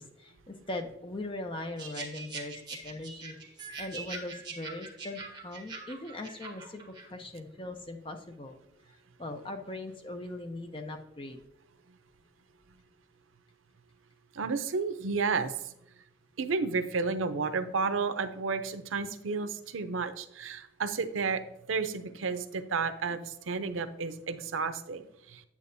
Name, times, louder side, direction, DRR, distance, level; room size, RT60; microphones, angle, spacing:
voice 1, 0.0-3.4 3.8-8.6 9.2-11.4 23.1-23.2, left 2 dB, 25° left, 5 dB, 0.6 m, -40 dB
sound 1, 1.8-7.1, right 4 dB, 20° right, 1.2 m, -43 dB
voice 2, 14.3-15.7 16.4-21.4 21.7-25.5, right 4 dB, 90° right, 10 dB, 0.6 m, -32 dB
8.5 x 8.3 x 2.7 m, 0.83 s
head